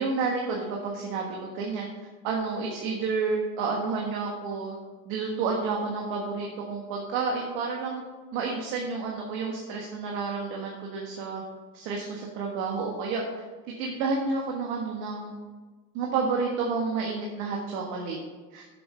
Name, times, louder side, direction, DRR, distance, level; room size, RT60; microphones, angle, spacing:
voice 1, 0.0-1.9 2.2-4.8 5.0-8.0 8.3-11.4 11.7-13.2 13.8-15.3 15.9-18.2 18.5-18.6, right 4 dB, 65° right, -1 dB, 1.5 m, -30 dB
7.2 x 7.0 x 5.5 m, 1.4 s
cardioid pair, 175°, 40 cm